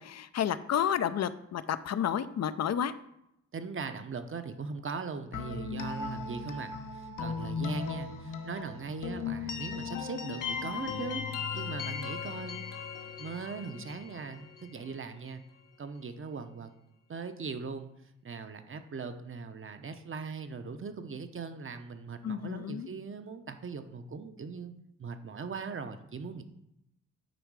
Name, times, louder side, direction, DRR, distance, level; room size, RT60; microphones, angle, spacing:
voice 1, 0.0-2.9 7.9-8.0 22.2-22.9, left 9 dB, 55° left, 14 dB, 0.5 m, -31 dB
voice 2, 3.5-11.3 11.5-12.6 13.2-15.4 15.8-16.7 17.1-17.9 18.2-24.7 25.0-26.4, right 5 dB, 40° right, 9 dB, 0.8 m, -40 dB
sound 1, 5.3-15.1, left 5 dB, 75° left, 1.0 m, -37 dB
9.2 x 3.5 x 4.8 m, 0.80 s
cardioid pair, 70°, 32 cm